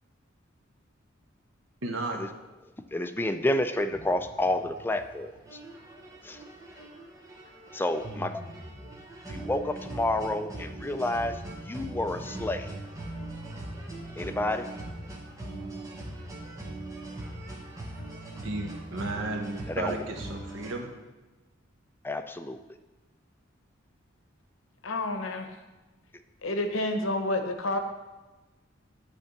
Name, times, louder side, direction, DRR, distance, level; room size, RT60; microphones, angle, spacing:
voice 1, 1.8-2.2 18.4-20.9, right 2 dB, 85° right, 3 dB, 1.0 m, -33 dB
voice 2, 2.9-5.3 6.2-6.4 7.7-8.4 9.3-11.4 11.6-12.7 14.2-14.7 19.7-20.0 22.0-22.6, left 1 dB, 10° left, 9 dB, 0.3 m, -29 dB
sound 1, 3.8-20.7, right 1 dB, 15° right, 1.0 m, -41 dB
voice 3, 24.8-25.5 26.4-27.8, left 2 dB, 80° left, 6 dB, 0.8 m, -29 dB
8.4 x 3.4 x 6.5 m, 1.1 s
head